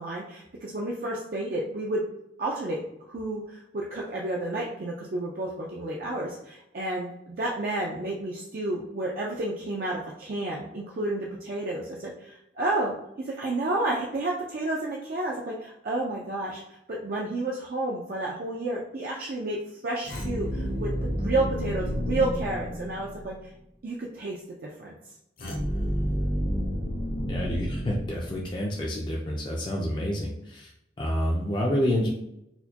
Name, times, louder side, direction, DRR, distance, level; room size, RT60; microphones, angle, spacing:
voice 1, 0.0-2.0 2.4-2.8 3.0-20.9 21.2-23.3 23.8-25.0, right 2 dB, 55° right, -3 dB, 0.4 m, -31 dB
sound 1, 20.0-23.4 25.4-28.7, equal, 55° left, 0.7 m, -30 dB
voice 2, 27.3-30.7 31.0-32.1, equal, 25° left, -2 dB, 0.4 m, -28 dB
4.2 x 2.2 x 2.8 m, 0.83 s
head